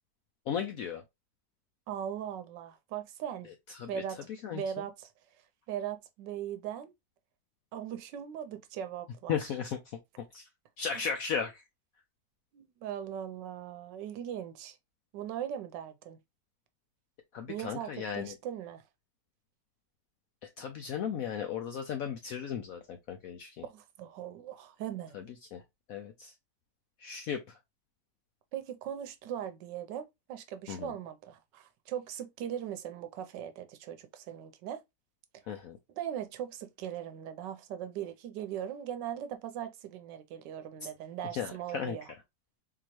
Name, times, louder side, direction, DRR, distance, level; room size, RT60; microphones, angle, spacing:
voice 1, 0.5-1.0 3.4-4.8 9.3-10.5 10.8-11.6 17.3-18.4 20.6-23.7 25.1-25.6 25.9-26.3 27.0-27.6 30.7-30.9 35.5-35.8 40.8-40.9 41.3-42.0, left 7 dB, 75° left, 0.8 m, -36 dB
voice 2, 1.9-3.5 3.9-4.2 4.5-5.1 5.7-6.9 7.7-9.4 12.5-14.8 15.1-16.2 17.5-18.8 23.6-25.1 28.5-34.8 35.3-35.4 36.0-42.1, right 10 dB, 80° right, 1.2 m, -39 dB
3.8 x 2.8 x 2.9 m
omnidirectional pair, 2.0 m